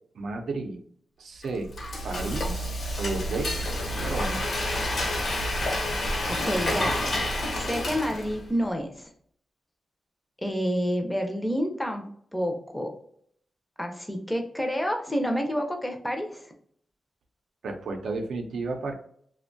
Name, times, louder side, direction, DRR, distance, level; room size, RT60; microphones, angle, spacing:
voice 1, 0.1-0.8 1.2-1.7 2.0-2.7 3.0-3.6 3.9-4.5 17.6-18.9, right 3 dB, 80° right, 4 dB, 0.5 m, -32 dB
Frying (food), 1.4-8.5, left 1 dB, 60° left, 0.7 m, -29 dB
voice 2, 6.3-7.0 7.5-9.1 10.4-12.9 13.8-16.4, equal, 5° left, 3 dB, 0.4 m, -29 dB
2.5 x 2.1 x 2.5 m, 0.63 s
wide cardioid pair, 115°, 0 cm